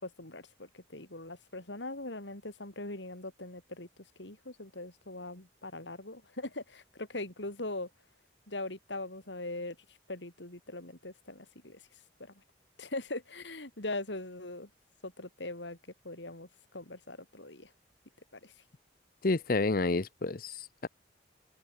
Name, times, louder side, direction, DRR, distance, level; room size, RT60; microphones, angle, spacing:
voice 1, 0.0-3.9 4.2-7.9 8.5-9.8 10.1-11.8 12.2-12.3 12.8-14.7 15.0-15.8 16.0-17.7 18.3-18.5, left 2 dB, 75° left, 4.6 m, -41 dB
voice 2, 19.2-20.9, left 3 dB, 50° left, 0.7 m, -30 dB
head